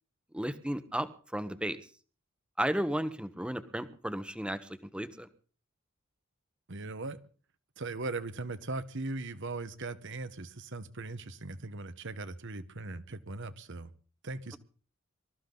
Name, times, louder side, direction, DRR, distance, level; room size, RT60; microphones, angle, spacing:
voice 1, 0.3-1.8 2.6-5.3, right 1 dB, 5° right, 1.2 m, -34 dB
voice 2, 6.7-7.2 7.8-13.9 14.2-14.6, right 3 dB, 60° right, 1.3 m, -39 dB
24.5 x 14.0 x 4.0 m
head